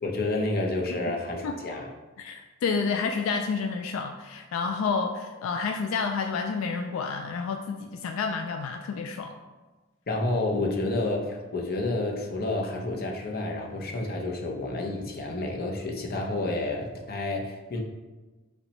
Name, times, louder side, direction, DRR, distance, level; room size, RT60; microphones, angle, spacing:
voice 1, 0.0-1.9 10.1-17.8, left 2 dB, 50° left, 1 dB, 0.7 m, -29 dB
voice 2, 2.2-9.3, left 5 dB, 85° left, 6 dB, 0.3 m, -29 dB
5.6 x 2.2 x 4.0 m, 1.2 s
head